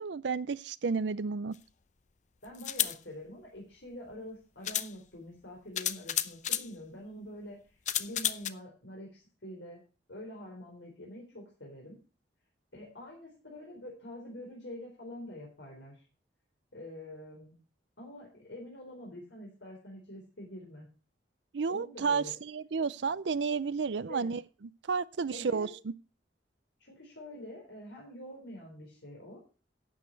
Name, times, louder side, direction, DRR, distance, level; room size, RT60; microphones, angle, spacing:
voice 1, 0.0-1.5 21.5-24.4 24.9-25.7, right 5 dB, 75° right, 0.5 m, -31 dB
sound 1, 1.5-1.6 2.5-3.0 4.1-4.2 4.6-4.9 5.8-6.7 7.9-8.5, left 11 dB, 45° left, 0.6 m, -31 dB
voice 2, 2.4-9.8 10.1-12.0 12.7-16.0 16.7-17.6 18.0-20.9 21.7-22.3 24.1-24.4 25.3-25.8 26.8-29.4, left 1 dB, 85° left, 4.1 m, -46 dB
12.0 x 8.3 x 4.5 m
head